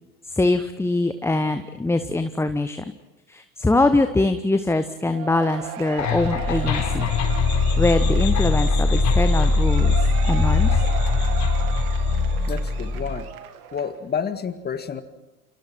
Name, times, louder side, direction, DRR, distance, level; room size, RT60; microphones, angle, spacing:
voice 1, 0.3-2.8 3.3-7.1 7.8-10.0 10.2-10.8, left 2 dB, 5° left, 9 dB, 1.0 m, -23 dB
Cheering / Applause / Crowd, 5.1-14.0, right 10 dB, 65° right, 2.3 m, -37 dB
sound 1, 6.0-13.2, left 3 dB, 35° left, 4.0 m, -21 dB
voice 2, 12.5-13.3 13.7-15.0, left 6 dB, 20° left, 10 dB, 1.9 m, -29 dB
29.0 x 28.5 x 4.6 m, 1.1 s
figure-of-eight pair, 80°, 47 cm